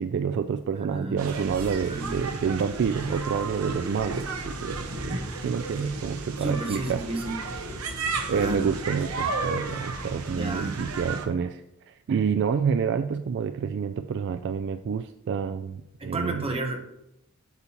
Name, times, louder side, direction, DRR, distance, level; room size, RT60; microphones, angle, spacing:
voice 1, 0.0-7.0 8.3-16.5, right 6 dB, 55° right, 10 dB, 0.3 m, -28 dB
voice 2, 0.8-1.2 1.9-2.3 6.4-7.4 8.3-8.7 10.3-10.8 16.0-16.8, right 2 dB, 25° right, 4 dB, 1.0 m, -32 dB
sound 1, 1.2-11.3, right 3 dB, 90° right, 0.9 m, -33 dB
8.0 x 6.9 x 2.9 m, 0.83 s
head